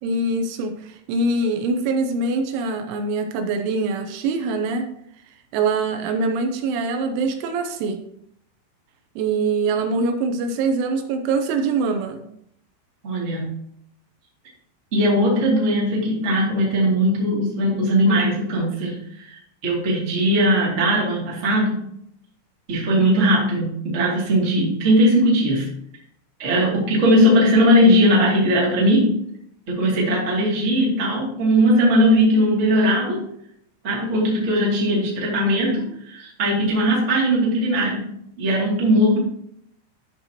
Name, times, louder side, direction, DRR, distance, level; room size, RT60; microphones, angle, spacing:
voice 1, 0.0-4.9 5.5-8.0 9.2-12.2, right 3 dB, 85° right, 6 dB, 3.1 m, -23 dB
voice 2, 13.0-13.5 14.9-21.9 22.7-25.7 26.4-29.2 29.7-33.2 33.8-38.1 38.4-39.2, equal, 25° right, -4 dB, 1.5 m, -19 dB
13.0 x 5.5 x 2.9 m, 0.72 s
omnidirectional pair, 5.7 m